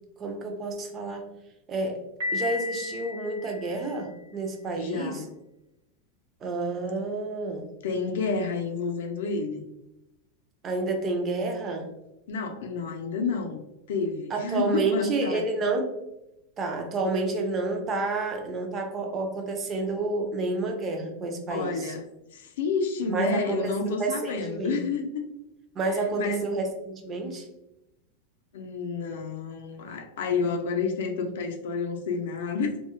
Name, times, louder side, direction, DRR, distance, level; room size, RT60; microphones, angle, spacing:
voice 1, 0.2-1.2 1.7-2.0 2.3-5.2 6.4-7.7 10.6-11.9 14.3-15.9 16.6-21.9 23.1-24.8 25.8-27.5, right 3 dB, 20° right, 3 dB, 0.4 m, -29 dB
Piano, 2.2-4.2, left 3 dB, 80° right, 0.9 m, -34 dB
voice 2, 4.8-5.3 7.8-9.7 12.3-15.5 21.5-22.1 22.3-25.2 26.2-26.4 28.5-32.8, left 4 dB, 75° left, 5 dB, 0.4 m, -30 dB
2.2 x 2.0 x 2.9 m, 0.90 s
supercardioid pair, 160°, 0 cm